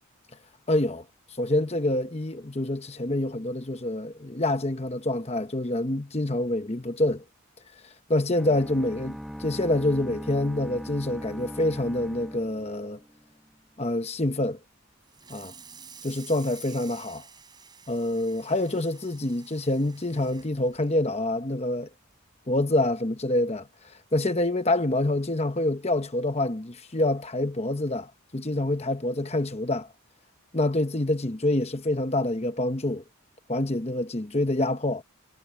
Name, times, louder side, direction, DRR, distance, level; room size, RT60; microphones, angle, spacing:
voice 1, 0.7-1.0 1.4-7.2 8.1-13.0 13.8-14.6 15.3-15.5 16.0-17.2 17.9-21.9 22.5-29.9 30.5-33.0 33.5-35.0, left 1 dB, 30° left, 1.0 m, -26 dB
sound 1, 8.3-13.3, equal, ahead, 1.0 m, -40 dB
Water tap faucet / Sink (filling or washing), 15.0-21.7 22.1-22.3 22.7-22.8 23.2-23.3 24.4-24.5 25.0-25.2, right 6 dB, 20° right, 3.9 m, -50 dB
head